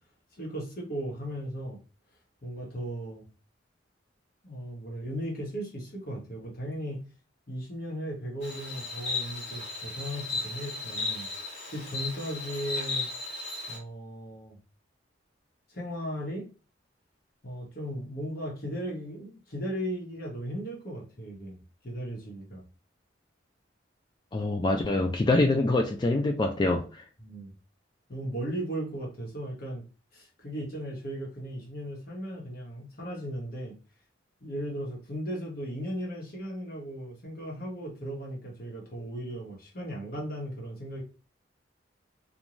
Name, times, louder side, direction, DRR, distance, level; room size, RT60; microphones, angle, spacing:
voice 1, 0.4-1.8 2.4-3.3 4.4-7.0 7.5-11.3 11.7-13.1 13.7-14.6 15.7-16.5 17.4-21.6 21.8-22.6 27.2-27.5 28.1-29.8 30.1-33.8 34.4-41.0, equal, 50° left, 1.1 m, -36 dB
Insect, 8.4-13.8, left 3 dB, 70° left, 1.5 m, -35 dB
voice 2, 24.3-26.9, left 2 dB, 25° left, 0.3 m, -25 dB
2.5 x 2.2 x 2.9 m
head